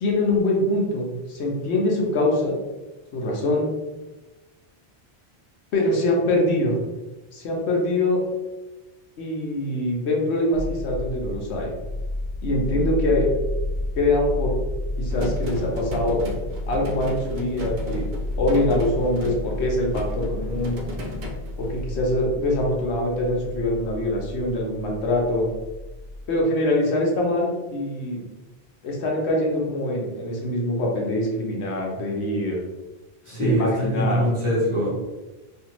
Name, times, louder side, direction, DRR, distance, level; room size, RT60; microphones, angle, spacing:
voice 1, 0.0-2.6 3.1-3.7 5.7-6.8 7.3-8.2 9.2-11.7 12.4-13.2 13.9-14.6 15.0-16.2 16.7-18.1 18.4-20.8 21.6-25.5 26.3-28.2 28.8-32.6 33.3-34.3, left 1 dB, 90° left, -1 dB, 1.0 m, -24 dB
sound 1, 10.5-26.4, left 2 dB, 50° left, 0.6 m, -31 dB
sound 2, 15.1-21.8, equal, 55° right, 0.6 m, -36 dB
voice 2, 33.3-34.9, equal, 30° right, -7 dB, 0.9 m, -23 dB
2.6 x 2.5 x 2.9 m, 1.1 s
omnidirectional pair, 1.1 m